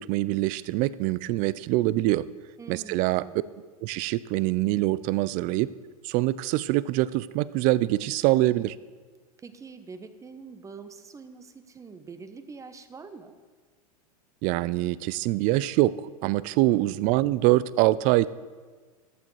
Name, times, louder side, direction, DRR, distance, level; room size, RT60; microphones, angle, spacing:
voice 1, 0.0-2.3 2.7-3.2 3.8-5.7 6.0-8.8 14.4-16.0 16.2-18.3, right 17 dB, 40° right, 19 dB, 0.4 m, -24 dB
voice 2, 2.6-3.5 9.4-13.4 16.7-16.9, right 5 dB, 15° right, 10 dB, 0.8 m, -45 dB
14.5 x 11.5 x 3.2 m, 1.5 s
hypercardioid pair, 110°, 20 cm